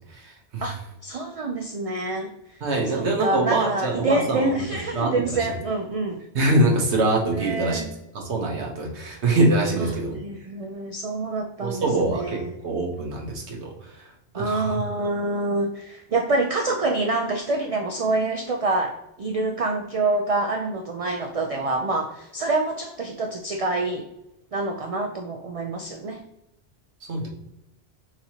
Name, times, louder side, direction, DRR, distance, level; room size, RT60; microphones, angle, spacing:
voice 1, 0.0-0.6 2.6-4.5 4.9-5.6 6.3-7.9 8.1-10.2 11.6-14.0 14.3-14.8 27.1-27.3, right 2 dB, 80° right, 1 dB, 1.3 m, -24 dB
voice 2, 0.6-2.3 2.9-6.2 7.3-7.9 9.8-9.9 10.2-12.5 14.4-24.1 24.5-26.2, right 2 dB, 55° right, 2 dB, 0.4 m, -26 dB
5.8 x 2.8 x 2.8 m, 0.87 s
omnidirectional pair, 1.1 m